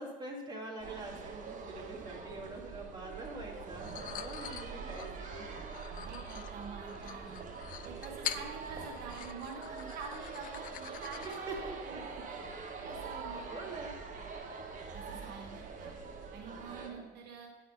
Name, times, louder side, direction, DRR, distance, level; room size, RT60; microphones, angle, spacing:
voice 1, 0.0-5.5 11.2-12.0 13.5-14.0 16.7-17.0, right 2 dB, 25° right, -2 dB, 1.9 m, -45 dB
sound 1, 0.8-16.9, right 4 dB, 50° right, 1.0 m, -44 dB
sound 2, 3.8-11.6, left 11 dB, 55° left, 0.4 m, -45 dB
voice 2, 5.9-7.5 7.8-11.3 11.6-12.4 12.8-13.6 14.9-16.0 16.3-17.5, right 5 dB, 75° right, 1 dB, 1.0 m, -47 dB
9.4 x 4.2 x 5.4 m, 1.2 s
cardioid pair, 110°, 17 cm